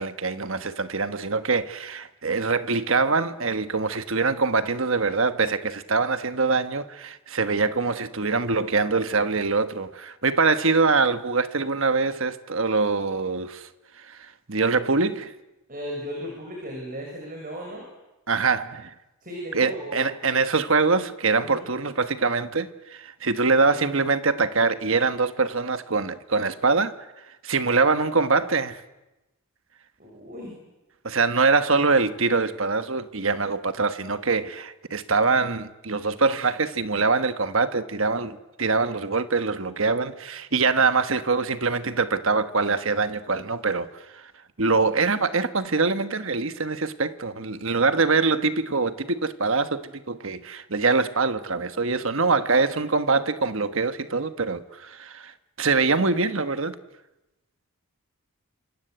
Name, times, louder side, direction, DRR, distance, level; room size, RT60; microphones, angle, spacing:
voice 1, 0.0-13.7 14.0-15.3 18.3-18.9 19.5-27.1 27.4-28.8 31.0-44.3 44.6-55.3 55.6-56.8, right 4 dB, 60° right, 1.4 m, -24 dB
voice 2, 15.7-17.9 19.2-20.0 21.4-21.7 30.0-30.6, equal, 40° right, 6.8 m, -36 dB
28.0 x 26.5 x 8.1 m
head